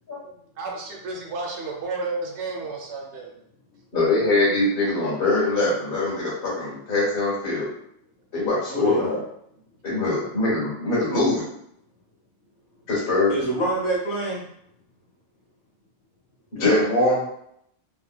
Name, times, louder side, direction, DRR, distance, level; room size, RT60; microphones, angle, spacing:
voice 1, 0.6-3.3, right 3 dB, 75° right, 1 dB, 1.0 m, -31 dB
voice 2, 3.9-7.7 8.3-9.2 9.8-11.4 12.9-13.3 16.6-17.3, left 2 dB, 55° left, -7 dB, 1.4 m, -22 dB
voice 3, 8.7-9.1 13.3-14.5 16.6-16.8, right 1 dB, 70° left, -4 dB, 1.4 m, -26 dB
3.0 x 3.0 x 2.2 m, 0.71 s
omnidirectional pair, 1.2 m